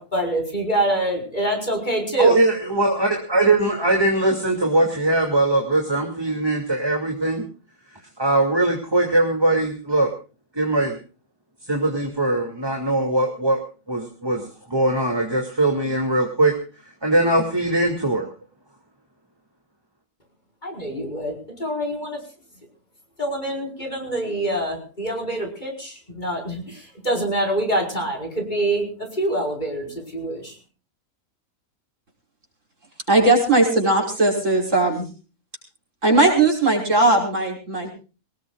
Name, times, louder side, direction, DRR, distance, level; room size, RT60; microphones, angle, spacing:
voice 1, 0.0-2.4 20.6-22.2 23.2-30.5, right 1 dB, 30° left, 3 dB, 5.2 m, -25 dB
voice 2, 2.2-7.4 8.2-10.1 10.6-10.9 11.7-13.6 13.9-16.5 17.0-18.3, right 2 dB, 15° right, 2 dB, 2.7 m, -21 dB
voice 3, 33.1-35.1 36.0-37.9, right 2 dB, 55° right, 1 dB, 5.8 m, -18 dB
24.0 x 19.5 x 2.4 m, 0.35 s
omnidirectional pair, 1.5 m